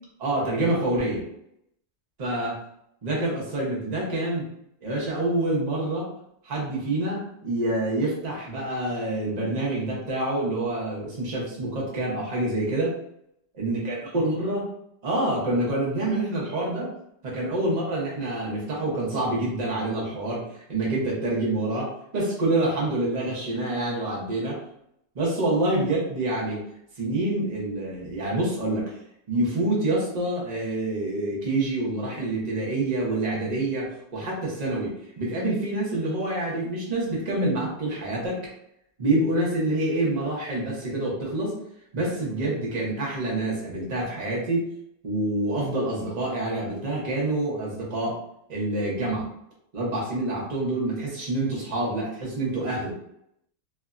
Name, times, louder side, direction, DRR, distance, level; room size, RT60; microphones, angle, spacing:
voice 1, 0.2-1.3 2.2-2.6 3.0-4.4 4.8-6.1 6.4-13.0 13.6-14.7 15.0-16.9 17.2-24.6 25.1-26.6 27.0-29.0 29.3-38.4 39.0-41.5 41.9-44.6 45.0-48.2 48.5-49.3 49.7-52.9, right 2 dB, 45° right, -4 dB, 0.5 m, -27 dB
3.3 x 2.2 x 2.4 m, 0.75 s
omnidirectional pair, 1.9 m